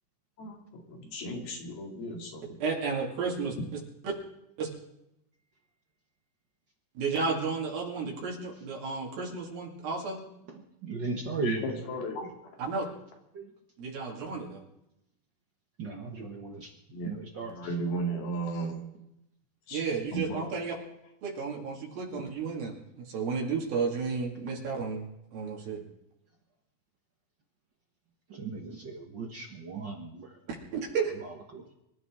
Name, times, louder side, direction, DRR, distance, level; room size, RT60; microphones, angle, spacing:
voice 1, 0.4-2.5 11.4-12.3 16.9-17.1 17.4-18.8 19.7-19.8 20.1-20.4, right 2 dB, 80° left, 1 dB, 4.5 m, -35 dB
voice 2, 2.6-3.6 4.0-4.1 4.6-4.7 7.0-10.2 12.6-12.9 13.8-14.6 19.7-20.8 21.2-25.8 30.7-31.1, right 5 dB, 75° right, -1 dB, 4.0 m, -32 dB
voice 3, 10.9-11.6 13.3-13.5 15.8-16.7 17.0-17.5 28.3-30.3 31.5-31.6, right 4 dB, 90° right, 2 dB, 0.9 m, -36 dB
25.5 x 13.5 x 3.7 m, 0.83 s
omnidirectional pair, 4.3 m